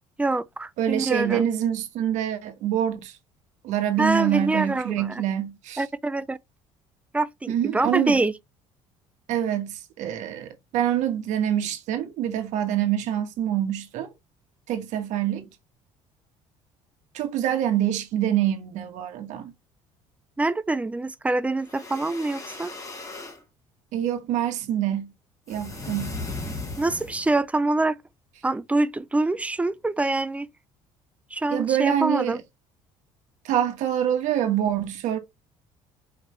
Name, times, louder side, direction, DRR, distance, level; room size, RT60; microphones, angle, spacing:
voice 1, 0.2-1.5 4.0-5.2 5.8-6.4 7.1-8.3 20.4-22.7 26.8-28.0 28.4-30.5 31.3-32.4, right 2 dB, 10° right, 0.5 m, -25 dB
voice 2, 0.8-3.2 3.6-5.8 7.5-8.2 9.3-14.1 14.7-15.5 17.1-19.5 23.9-25.1 25.5-26.2 31.5-32.4 33.4-35.2, right 10 dB, 70° right, 1.3 m, -26 dB
sound 1, 21.6-23.4 25.5-27.4, left 2 dB, 25° left, 1.5 m, -36 dB
4.9 x 3.2 x 3.2 m
supercardioid pair, 90°, 13 cm